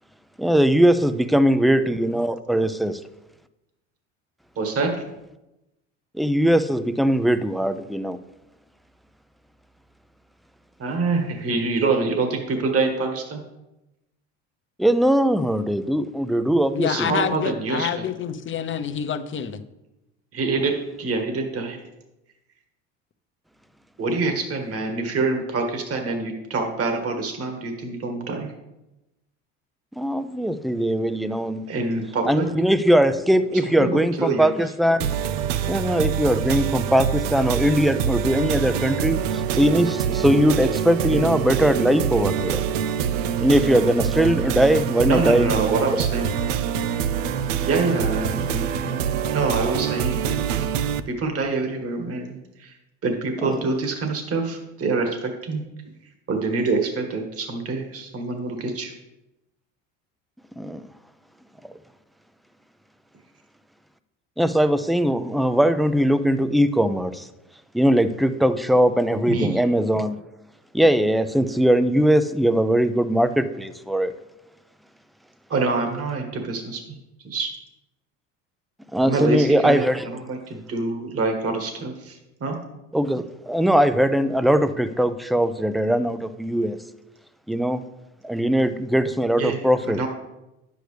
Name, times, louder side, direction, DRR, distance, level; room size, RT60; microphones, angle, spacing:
voice 1, 0.4-3.0 6.2-8.2 14.8-17.1 30.0-31.6 32.3-35.1 35.7-42.6 43.4-45.6 53.4-53.5 60.6-60.8 64.4-67.2 67.7-70.2 70.7-74.1 78.9-80.0 82.9-86.8 87.5-87.8 88.2-90.0, equal, ahead, 12 dB, 0.4 m, -20 dB
voice 2, 4.6-5.0 10.8-13.4 16.8-18.0 20.3-21.8 24.0-28.5 31.7-32.5 33.7-34.5 41.1-41.3 45.0-46.6 47.6-49.1 49.3-50.7 51.1-52.8 53.0-55.6 56.3-58.9 69.3-69.6 75.5-76.8 77.2-77.5 79.0-79.9 80.2-82.6 89.4-90.1, right 3 dB, 40° right, 4 dB, 1.7 m, -26 dB
voice 3, 16.7-19.6, left 8 dB, 35° left, 10 dB, 0.8 m, -27 dB
sound 1, 35.0-51.0, right 8 dB, 85° right, 0.6 m, -25 dB
10.0 x 8.0 x 3.3 m, 0.95 s
supercardioid pair, 85°, 37 cm